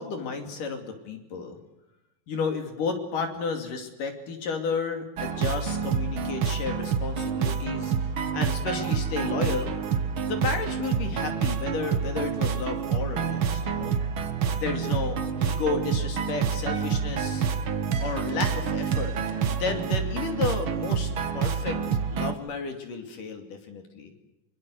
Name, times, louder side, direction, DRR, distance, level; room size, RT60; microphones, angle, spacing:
voice 1, 0.0-1.6 2.3-7.9 8.3-9.7 10.2-14.0 14.5-17.5 18.0-19.2 19.5-24.1, left 4 dB, 65° left, 5 dB, 4.3 m, -32 dB
sound 1, 5.2-22.3, right 6 dB, 55° right, 1.5 m, -28 dB
25.0 x 24.5 x 6.5 m, 0.95 s
omnidirectional pair, 4.1 m